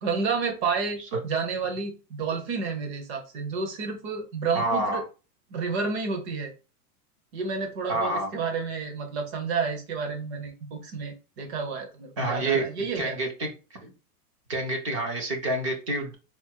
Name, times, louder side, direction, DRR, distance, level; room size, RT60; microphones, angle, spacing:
voice 1, 0.0-5.0 5.5-6.5 7.3-13.2, right 5 dB, 45° right, 3 dB, 1.2 m, -30 dB
voice 2, 4.5-5.0 7.9-8.3 12.2-12.7 13.0-13.5 13.8-13.9 14.5-16.1, right 2 dB, 20° right, 3 dB, 0.4 m, -27 dB
4.3 x 2.2 x 4.6 m, 0.32 s
supercardioid pair, 175°, 46 cm